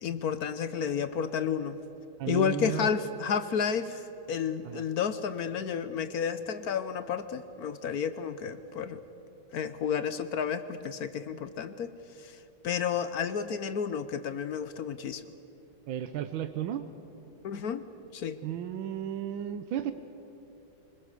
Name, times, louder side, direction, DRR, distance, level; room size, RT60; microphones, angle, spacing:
voice 1, 0.0-1.8 2.3-4.0 4.3-9.0 9.5-11.9 12.2-12.3 12.6-15.2 17.4-17.8 18.1-18.4, left 7 dB, 60° left, 12 dB, 1.1 m, -31 dB
voice 2, 2.2-2.9 4.6-4.8 15.9-16.8 18.4-19.9, right 10 dB, 80° right, 10 dB, 1.5 m, -33 dB
25.5 x 20.5 x 6.7 m, 3.0 s
omnidirectional pair, 2.2 m